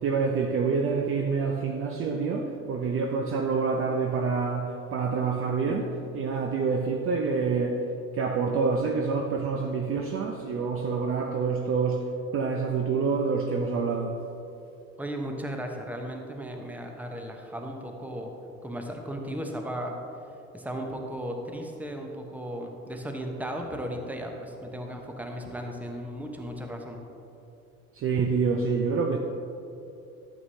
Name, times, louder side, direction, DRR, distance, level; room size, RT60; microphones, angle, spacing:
voice 1, 0.0-7.8 8.1-12.1 12.3-14.2 27.9-29.2, right 5 dB, 30° right, 3 dB, 0.6 m, -27 dB
voice 2, 15.0-18.4 18.6-20.0 20.5-27.0, equal, 5° right, 3 dB, 1.0 m, -36 dB
12.5 x 7.3 x 2.8 m, 2.8 s
figure-of-eight pair, 65°, 43 cm